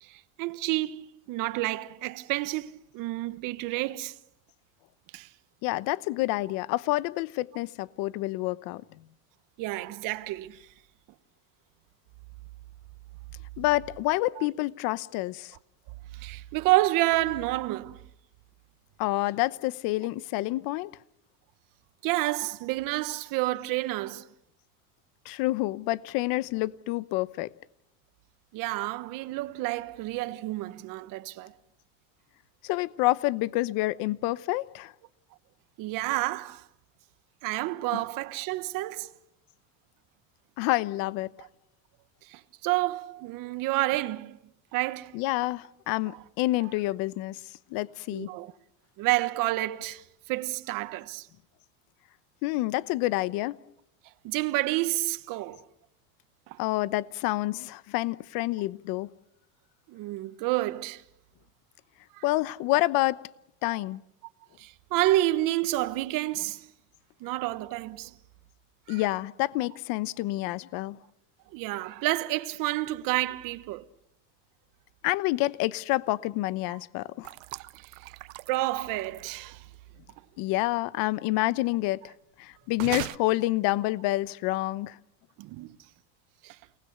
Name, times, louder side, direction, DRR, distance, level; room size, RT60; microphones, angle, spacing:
voice 1, 0.0-4.2 5.1-5.3 9.6-10.7 14.4-14.5 16.1-18.0 22.0-24.3 28.5-31.5 35.8-36.7 37.4-39.1 41.4-41.5 42.2-44.4 44.7-45.2 46.0-46.2 48.1-48.5 49.0-51.3 54.2-55.6 56.5-56.6 59.9-61.0 62.1-62.2 63.7-63.8 64.6-66.7 67.2-68.1 68.9-69.0 71.5-73.8 76.7-76.8 77.7-78.1 78.5-79.7 85.4-85.8 86.4-86.6, right 17 dB, 55° right, 1.3 m, -29 dB
voice 2, 5.6-8.8 13.6-15.6 19.0-20.9 25.2-27.5 32.6-34.9 37.9-38.0 40.6-41.3 45.1-47.4 47.7-48.3 52.4-53.6 56.6-59.1 62.2-63.2 63.6-64.0 68.9-71.0 75.0-77.3 80.4-82.1 82.4-85.0, left 18 dB, 60° left, 1.0 m, -28 dB
sound 1, 77.2-79.5 82.7-83.2, right 22 dB, 75° right, 0.8 m, -38 dB
29.5 x 19.5 x 7.0 m
supercardioid pair, 120°, 39 cm